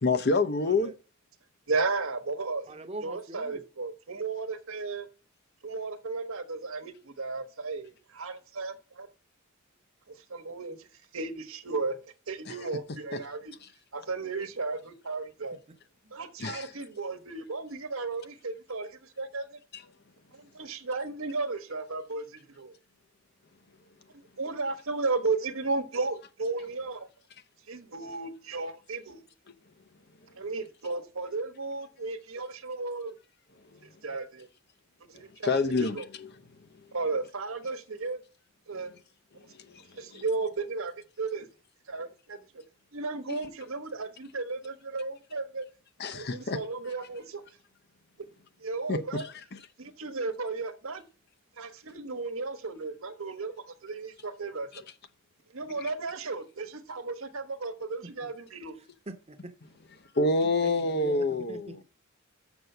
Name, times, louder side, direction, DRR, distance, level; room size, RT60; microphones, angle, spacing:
voice 1, 0.0-0.9 12.5-12.7 13.1-13.2 16.4-16.7 19.7-19.8 35.4-36.0 40.1-40.2 43.3-43.4 46.0-46.6 48.9-49.3 55.8-55.9 60.1-61.8, left 3 dB, 50° left, 0.7 m, -27 dB
voice 2, 0.6-0.9 2.7-3.7 15.5-15.6 16.0-16.1 58.0-58.3 58.7-59.5 60.6-61.8, right 1 dB, 30° right, 0.9 m, -43 dB
voice 3, 1.7-2.7 3.0-5.1 5.6-9.1 10.1-10.9 11.1-12.0 12.3-13.5 13.9-15.6 16.1-19.6 20.3-22.7 24.4-27.1 27.7-29.2 30.4-33.1 34.0-34.5 35.1-36.1 36.9-38.2 38.7-38.9 39.3-39.4 40.0-41.5 41.9-42.6 42.9-45.7 46.1-47.4 48.6-49.2 49.8-51.0 51.6-54.7 55.5-58.8, right 3 dB, 75° right, 1.1 m, -34 dB
6.8 x 6.3 x 6.6 m
head